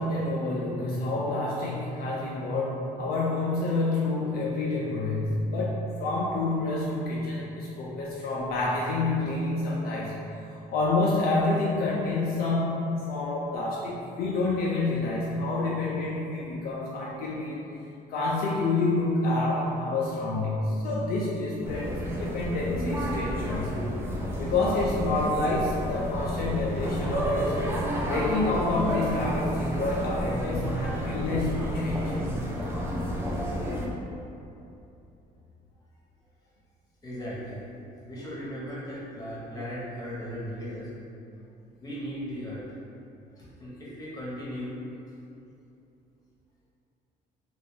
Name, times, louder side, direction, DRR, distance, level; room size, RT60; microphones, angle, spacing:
voice 1, 0.0-10.1 10.5-17.8 18.1-23.8 24.4-27.7 28.1-32.2, left 2 dB, 60° left, -5 dB, 0.4 m, -28 dB
sound 1, 21.6-33.9, equal, 15° right, 0.4 m, -31 dB
voice 2, 37.0-37.6 38.1-40.9 41.8-42.6 43.4-44.8, equal, 20° left, -7 dB, 1.0 m, -37 dB
2.4 x 2.3 x 3.6 m, 2.7 s
cardioid pair, 110°, 17 cm